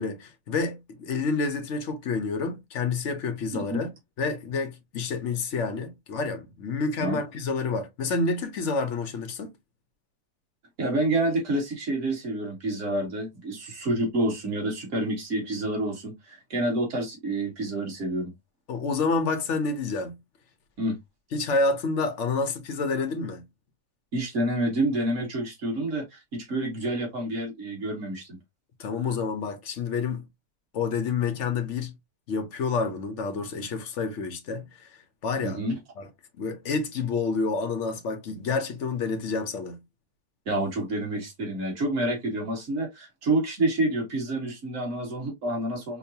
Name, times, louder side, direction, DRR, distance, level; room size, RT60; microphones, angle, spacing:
voice 1, 0.0-3.9 4.2-9.5 18.7-20.2 21.3-23.5 28.8-30.3 30.7-31.9 32.3-34.9 35.2-35.6 36.0-36.1 36.4-39.8, left 4 dB, 55° left, 0.9 m, -28 dB
voice 2, 10.8-18.3 20.8-21.0 24.1-28.4 35.4-35.8 40.5-46.0, right 1 dB, 45° right, 2.0 m, -28 dB
5.2 x 2.3 x 2.7 m
omnidirectional pair, 1.9 m